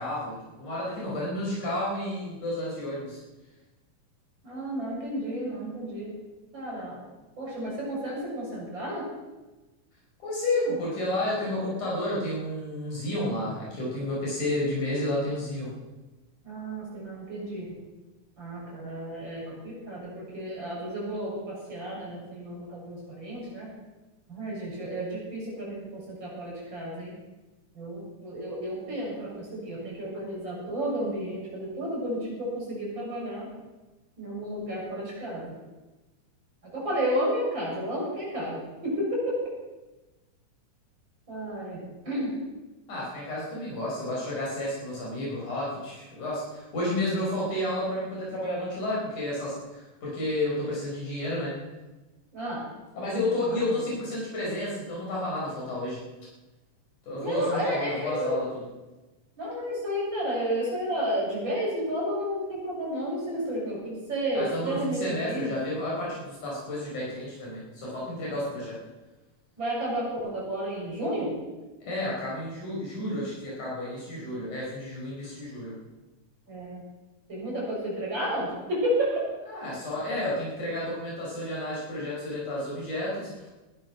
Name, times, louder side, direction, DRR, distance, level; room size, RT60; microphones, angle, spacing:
voice 1, 0.0-3.2 10.2-15.7 42.9-51.5 52.9-56.0 57.0-58.5 64.3-68.8 71.9-75.7 79.5-83.5, left 1 dB, 75° left, -5 dB, 6.5 m, -31 dB
voice 2, 4.4-6.1 6.5-7.0 7.4-9.0 16.4-17.7 18.4-23.7 24.3-27.2 27.7-33.5 34.2-35.5 36.7-39.4 41.3-41.8 42.0-42.3 52.3-52.6 53.5-53.6 57.2-58.3 59.4-65.6 69.6-71.3 74.1-74.3 76.5-76.8 77.3-79.3, equal, 35° right, -4 dB, 7.6 m, -32 dB
19.0 x 12.5 x 6.0 m, 1.1 s
omnidirectional pair, 3.5 m